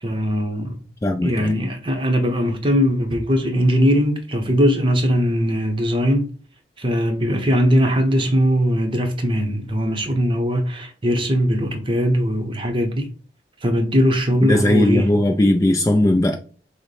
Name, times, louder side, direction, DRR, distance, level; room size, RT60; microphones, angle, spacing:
voice 1, 0.0-0.8 1.2-6.3 6.8-13.1 13.6-15.1, equal, 25° right, 0.8 m, -20 dB
voice 2, 1.0-1.5 14.4-16.4, left 1 dB, 20° left, 0.3 m, -18 dB
6.3 x 2.1 x 3.2 m
head